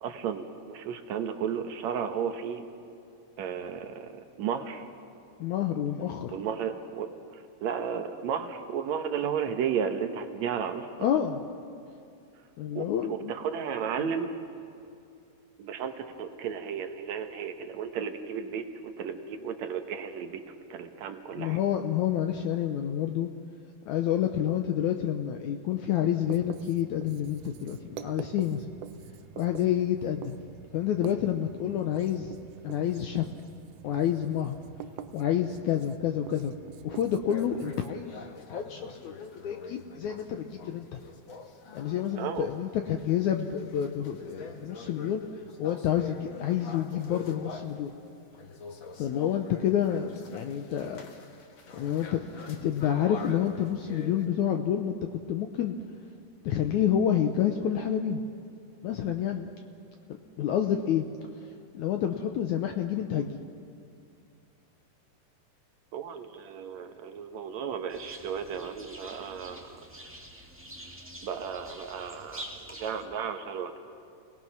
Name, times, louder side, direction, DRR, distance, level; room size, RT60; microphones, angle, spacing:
voice 1, 0.0-2.7 3.4-4.1 4.4-4.9 6.3-10.9 12.8-14.3 15.6-21.6 42.2-42.5 65.9-69.8 71.2-73.8, right 7 dB, 65° right, 6 dB, 2.0 m, -34 dB
voice 2, 5.4-6.3 11.0-11.4 12.6-13.3 21.4-23.3 23.9-28.7 29.4-30.4 30.7-32.3 32.6-33.3 33.8-34.6 35.1-36.5 36.8-41.0 41.7-45.2 45.6-47.9 49.0-51.0 51.7-55.8 56.5-58.2 58.8-59.5 60.4-61.1 61.7-63.4, left 10 dB, 75° left, 5 dB, 1.8 m, -28 dB
Writing, 26.2-37.9, right 9 dB, 90° right, 2.7 m, -46 dB
sound 1, 37.3-47.9 48.4-54.3, left 4 dB, 50° left, 1.5 m, -45 dB
sound 2, 67.9-73.0, right 1 dB, 15° right, 0.4 m, -46 dB
28.5 x 19.5 x 6.0 m, 2.5 s
omnidirectional pair, 4.2 m